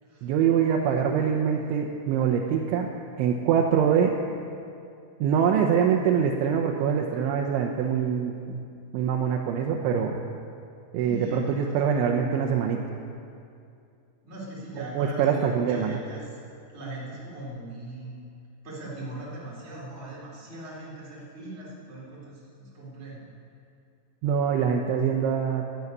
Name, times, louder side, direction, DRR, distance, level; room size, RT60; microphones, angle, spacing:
voice 1, 0.2-2.9 3.2-4.1 5.2-8.6 8.9-10.2 10.9-12.8 14.8-16.0 24.2-25.6, right 7 dB, 85° right, 1 dB, 3.3 m, -24 dB
voice 2, 11.0-11.8 14.2-16.3 16.7-18.3 18.6-23.2, right 1 dB, 15° right, -6 dB, 3.9 m, -40 dB
12.5 x 12.0 x 9.5 m, 2.5 s
omnidirectional pair, 5.3 m